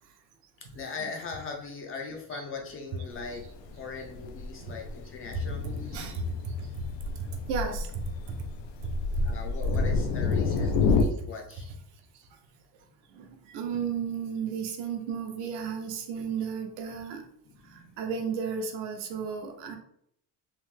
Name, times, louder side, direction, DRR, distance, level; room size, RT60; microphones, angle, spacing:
voice 1, 0.7-3.4 3.8-6.1 9.2-11.7 17.5-18.0, left 4 dB, 35° left, 1 dB, 0.4 m, -40 dB
Thunder, 3.1-11.0, left 4 dB, 90° left, 0.5 m, -29 dB
voice 2, 5.9-6.9 7.2-8.4 8.8-9.2 9.7-9.8 11.0-11.3 12.1-12.4 12.7-17.3 17.6-19.8, right 5 dB, 75° right, 4 dB, 0.8 m, -34 dB
3.2 x 2.1 x 3.2 m, 0.70 s
cardioid pair, 150°, 43 cm